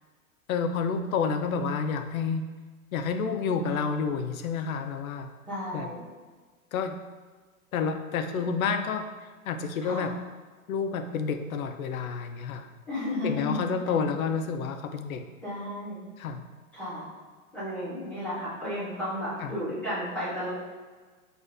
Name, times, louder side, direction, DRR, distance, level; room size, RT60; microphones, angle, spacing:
voice 1, 0.5-2.4 2.9-5.3 5.7-5.9 6.7-7.0 7.7-9.1 9.5-10.1 10.7-12.7 13.2-15.2 16.2-16.4 19.4-19.6, left 5 dB, 70° left, 7 dB, 0.5 m, -29 dB
voice 2, 3.6-3.9 5.5-6.0 8.3-8.4 9.8-10.1 12.9-14.1 15.4-16.1 16.7-17.1 17.5-20.5, left 1 dB, 5° left, -14 dB, 0.8 m, -33 dB
6.5 x 2.5 x 2.5 m, 1.4 s
hypercardioid pair, 170°, 44 cm